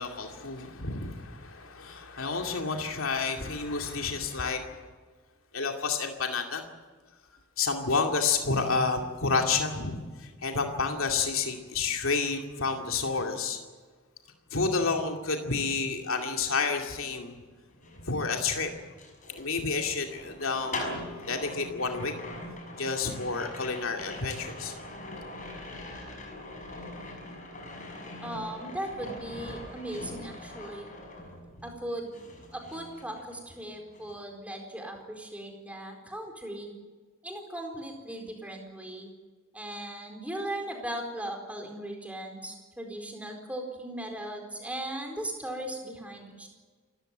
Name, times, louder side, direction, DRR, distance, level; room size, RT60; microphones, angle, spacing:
voice 1, 0.0-4.8 5.5-6.6 7.6-13.6 14.5-17.4 18.1-18.7 19.3-22.1 22.8-24.7, left 4 dB, 75° left, 3 dB, 2.4 m, -30 dB
sound 1, 17.7-31.8 32.1-33.6 33.9-34.2, left 2 dB, 35° left, 6.0 m, -42 dB
voice 2, 28.2-30.9 31.6-32.2 32.5-36.7 37.2-39.1 39.5-46.5, right 1 dB, 5° right, 3 dB, 4.3 m, -38 dB
28.0 x 14.5 x 9.1 m, 1.4 s
head